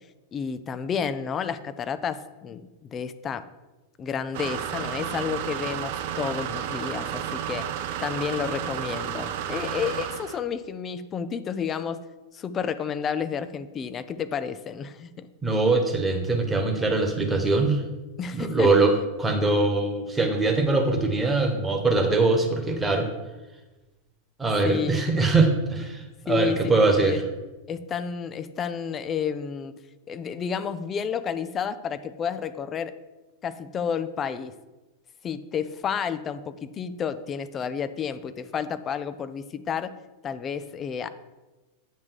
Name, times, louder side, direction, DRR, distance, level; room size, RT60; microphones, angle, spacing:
voice 1, 0.3-3.4 4.0-7.7 8.0-12.0 12.3-15.3 18.2-18.7 24.6-25.0 26.3-27.2 27.7-29.8 30.1-32.9 33.4-34.5 35.2-39.9 40.2-41.1, left 7 dB, 25° left, 12 dB, 0.4 m, -31 dB
sound 1, 4.3-10.4, right 9 dB, 50° right, 0.5 m, -32 dB
voice 2, 15.4-17.8 18.3-18.9 19.2-23.1 24.4-27.2, right 3 dB, 10° right, 3 dB, 1.3 m, -22 dB
8.3 x 3.6 x 6.4 m, 1.1 s
figure-of-eight pair, 90°, 0 cm